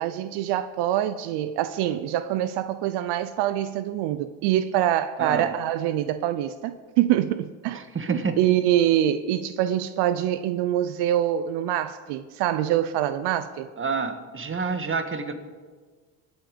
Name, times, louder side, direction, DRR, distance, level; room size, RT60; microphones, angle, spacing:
voice 1, 0.0-13.7, right 12 dB, 85° right, 0.7 m, -25 dB
voice 2, 5.2-5.5 7.7-8.4 13.8-15.3, right 4 dB, 30° right, 1.6 m, -28 dB
21.5 x 8.1 x 5.1 m
supercardioid pair, 75°, 39 cm